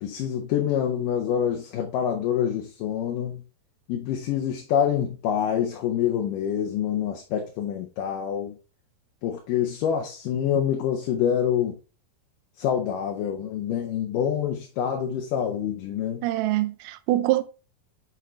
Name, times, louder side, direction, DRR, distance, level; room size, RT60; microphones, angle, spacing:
voice 1, 0.0-3.4 3.9-8.6 9.2-11.8 12.6-16.2, left 9 dB, 75° left, 2.2 m, -26 dB
voice 2, 16.2-17.4, right 15 dB, 80° right, 2.0 m, -24 dB
8.3 x 3.8 x 3.1 m
omnidirectional pair, 4.1 m